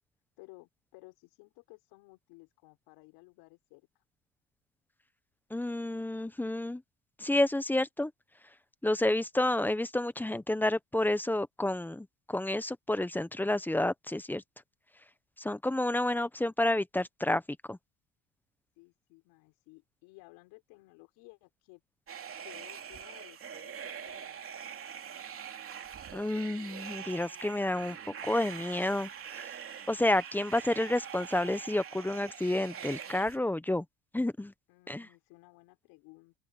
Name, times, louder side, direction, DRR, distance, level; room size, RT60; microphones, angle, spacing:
voice 1, 0.4-4.0 18.8-21.8 22.4-24.6 34.7-36.3, left 25 dB, 90° left, 6.0 m, -56 dB
voice 2, 5.5-6.8 7.2-8.1 8.8-14.4 15.4-17.4 17.7-17.8 26.1-28.0 28.2-29.6 29.9-33.8 34.1-34.5 34.9-35.1, left 1 dB, 5° left, 0.8 m, -30 dB
sound 1, 22.1-33.4, right 8 dB, 35° right, 2.9 m, -44 dB
open air
cardioid pair, 130°, 38 cm